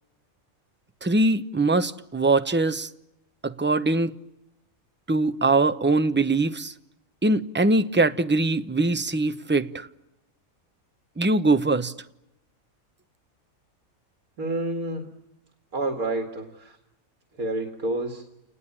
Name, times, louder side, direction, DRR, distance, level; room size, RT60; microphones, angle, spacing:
voice 1, 1.0-2.9 3.4-4.1 5.1-6.7 7.2-9.9 11.2-11.9, right 2 dB, 10° right, 0.7 m, -22 dB
voice 2, 14.4-15.0 15.7-16.8 17.4-18.2, right 2 dB, 80° right, 2.6 m, -29 dB
29.5 x 20.0 x 10.0 m
omnidirectional pair, 1.5 m